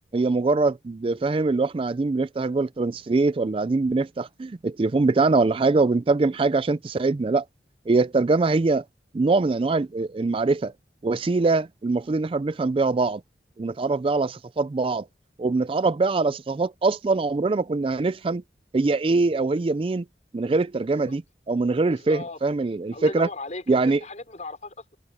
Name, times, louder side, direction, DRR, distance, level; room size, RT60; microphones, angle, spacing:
voice 1, 0.1-7.4 7.9-8.8 9.1-10.7 11.0-13.2 13.6-15.1 15.4-18.4 18.7-20.0 20.3-21.2 21.5-23.3 23.7-24.0, right 3 dB, 30° right, 0.4 m, -23 dB
voice 2, 21.9-22.4 22.9-25.0, left 2 dB, 40° left, 5.1 m, -37 dB
head